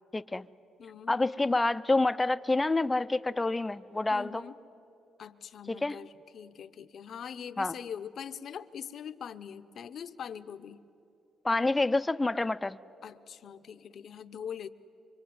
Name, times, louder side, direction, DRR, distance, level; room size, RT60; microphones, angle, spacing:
voice 1, 0.1-0.5 1.1-4.4 5.7-6.0 7.6-7.7 11.4-12.8, left 2 dB, 15° left, 13 dB, 0.6 m, -28 dB
voice 2, 0.8-1.1 4.1-4.5 5.2-10.8 13.0-14.7, left 8 dB, 60° left, 11 dB, 0.9 m, -42 dB
25.0 x 24.5 x 9.4 m, 2.9 s
cardioid pair, 90°, 0 cm